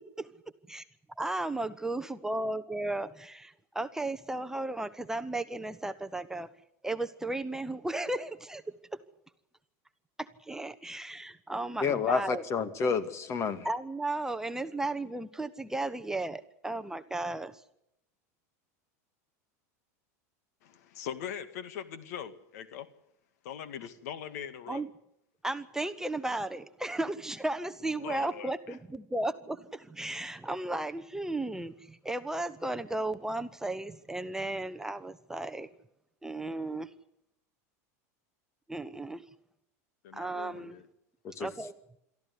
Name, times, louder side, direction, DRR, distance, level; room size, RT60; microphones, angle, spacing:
voice 1, 1.2-6.5 6.8-8.6 10.2-12.4 13.6-17.6 24.7-24.9 25.4-35.7 36.2-36.9 38.7-39.2 40.1-40.8 41.4-41.7, right 2 dB, 5° right, 0.9 m, -35 dB
voice 2, 11.8-13.7 41.2-41.5, left 5 dB, 35° left, 2.3 m, -29 dB
voice 3, 20.6-22.9 23.4-24.8 28.0-28.8 40.0-40.9, left 9 dB, 75° left, 2.0 m, -41 dB
23.0 x 14.0 x 9.6 m
supercardioid pair, 125°, 9 cm